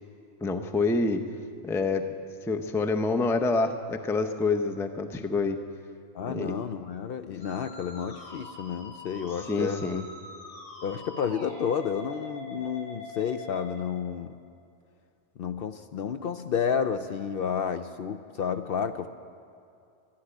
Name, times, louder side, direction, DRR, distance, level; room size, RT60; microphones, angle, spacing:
voice 1, 0.4-1.2 1.6-2.0 2.4-5.6 6.3-6.5 9.4-10.0, left 3 dB, 5° left, 6 dB, 0.4 m, -27 dB
voice 2, 6.1-9.9 10.8-14.4 15.4-19.1, left 7 dB, 60° left, 9 dB, 0.6 m, -31 dB
Musical instrument, 7.4-13.7, left 2 dB, 85° left, 4.8 m, -44 dB
12.5 x 11.5 x 9.8 m, 2.5 s
omnidirectional pair, 1.2 m